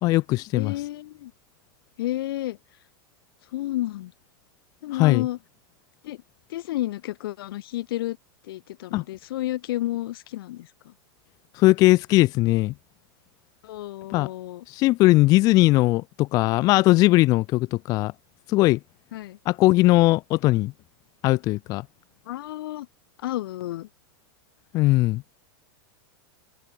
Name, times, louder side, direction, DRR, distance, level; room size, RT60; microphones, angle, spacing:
voice 1, 0.0-0.7 4.9-5.3 8.9-9.0 11.5-12.7 14.1-14.3 14.7-18.1 18.5-18.8 19.5-20.7 21.2-21.8 24.7-25.2, left 19 dB, 30° left, 0.6 m, -19 dB
voice 2, 0.5-1.3 2.0-2.6 3.5-4.1 4.8-5.4 6.0-6.2 6.5-8.2 8.4-10.9 13.6-14.6 19.1-19.4 22.2-22.9 23.2-23.9, left 15 dB, 70° left, 1.4 m, -31 dB
open air
supercardioid pair, 165°, 13 cm